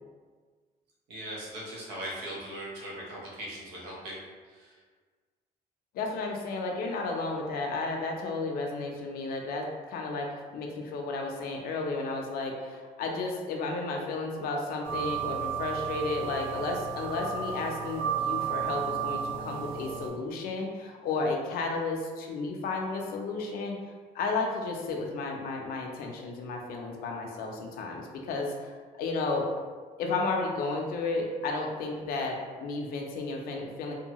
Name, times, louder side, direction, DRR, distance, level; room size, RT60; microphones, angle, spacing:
voice 1, 1.1-4.2 4.5-4.8, right 1 dB, 90° right, -4 dB, 0.9 m, -39 dB
voice 2, 5.9-23.8 24.1-29.5 30.0-33.9, left 3 dB, 65° left, 1 dB, 0.5 m, -33 dB
sound 1, 14.8-20.1, right 8 dB, 55° right, 0.9 m, -33 dB
2.7 x 2.2 x 2.9 m, 1.5 s
cardioid pair, 110°, 17 cm